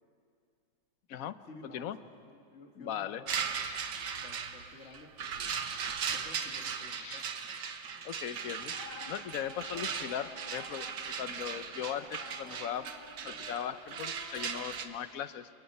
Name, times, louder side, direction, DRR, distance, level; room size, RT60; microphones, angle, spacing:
voice 1, 1.4-3.5 4.2-5.5 6.1-7.2, left 2 dB, 40° left, 2 dB, 1.9 m, -52 dB
voice 2, 2.8-3.2 3.5-3.8 7.0-7.2 8.0-8.7 9.1-12.9 13.2-15.5, left 10 dB, 60° left, 13 dB, 1.0 m, -39 dB
sound 1, 3.3-14.9, right 7 dB, 70° right, 1.8 m, -38 dB
sound 2, 8.5-15.0, left 1 dB, 85° left, 5.9 m, -50 dB
30.0 x 27.5 x 5.5 m, 2.3 s
omnidirectional pair, 2.0 m